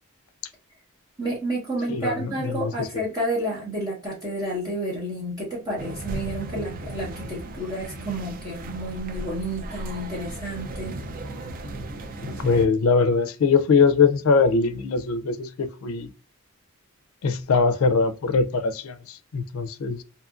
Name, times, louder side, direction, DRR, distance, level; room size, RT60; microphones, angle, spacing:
voice 1, 1.2-11.0, right 1 dB, 15° right, 0.9 m, -30 dB
voice 2, 1.9-2.9 12.2-16.1 17.2-20.0, left 4 dB, 70° left, 0.4 m, -22 dB
sound 1, 5.8-12.7, right 1 dB, 40° right, 0.4 m, -36 dB
2.7 x 2.4 x 2.3 m
head